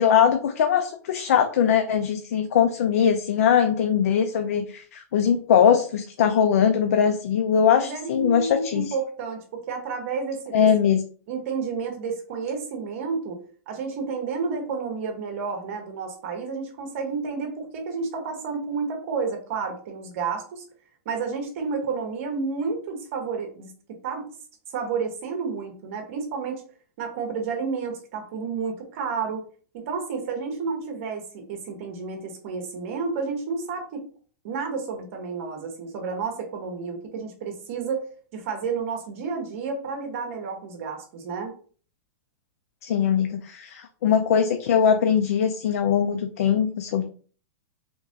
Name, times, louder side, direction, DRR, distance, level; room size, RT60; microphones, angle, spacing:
voice 1, 0.0-8.9 10.5-11.0 42.8-47.0, left 8 dB, 75° left, 6 dB, 0.5 m, -21 dB
voice 2, 7.8-10.7 11.3-13.4 13.7-20.6 21.0-23.7 24.0-24.3 24.7-26.6 27.0-29.4 29.7-34.1 34.4-38.0 38.3-41.5, right 5 dB, 60° right, 3 dB, 1.2 m, -30 dB
3.5 x 2.9 x 2.8 m, 0.42 s
supercardioid pair, 140°, 8 cm